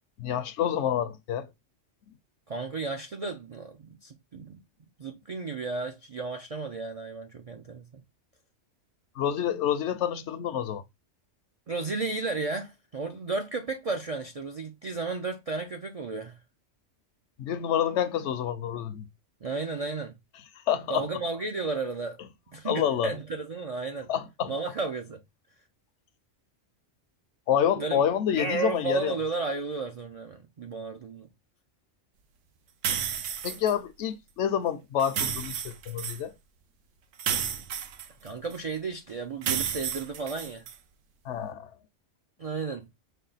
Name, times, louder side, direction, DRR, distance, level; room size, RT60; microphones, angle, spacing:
voice 1, 0.2-1.5 9.2-10.8 17.4-19.1 20.7-21.1 22.6-23.1 24.1-24.5 27.5-29.1 33.4-36.3 41.2-41.7, left 9 dB, 75° left, 0.9 m, -28 dB
voice 2, 2.5-4.6 5.0-8.0 11.7-16.4 19.4-20.2 20.9-22.2 22.5-24.1 24.5-25.2 27.8-28.0 28.3-31.3 38.2-40.7 42.4-42.9, right 3 dB, 60° right, 0.3 m, -33 dB
sound 1, 32.8-33.7 35.0-36.2 37.2-38.6 39.4-40.8, right 8 dB, 85° right, 1.0 m, -31 dB
5.4 x 2.2 x 3.9 m
omnidirectional pair, 1.3 m